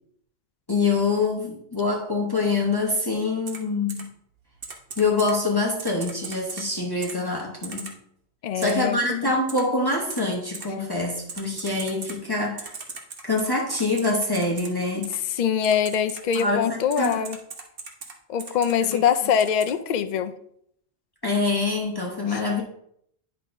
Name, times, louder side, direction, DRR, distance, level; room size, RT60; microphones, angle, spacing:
voice 1, 0.7-4.1 5.0-7.9 8.5-12.7 13.2-15.1 16.3-17.2 18.8-18.9 19.2-19.3 21.2-22.6, left 3 dB, 20° left, 0.9 m, -25 dB
Typing, 3.5-3.6 3.9-4.0 4.6-5.3 5.8-6.6 7.0-7.1 7.6-7.9 8.6-8.7 9.5-9.6 10.1-10.2 10.5-10.6 11.3-12.1 12.6-14.7 15.0-15.2 15.6-16.4 16.9-18.1 18.4-18.9 19.4-19.7, right 4 dB, 55° right, 1.2 m, -37 dB
voice 2, 8.4-9.3 15.3-17.4 18.3-20.3 22.3-22.4, left 8 dB, 60° left, 0.5 m, -23 dB
10.0 x 5.6 x 2.6 m
omnidirectional pair, 1.2 m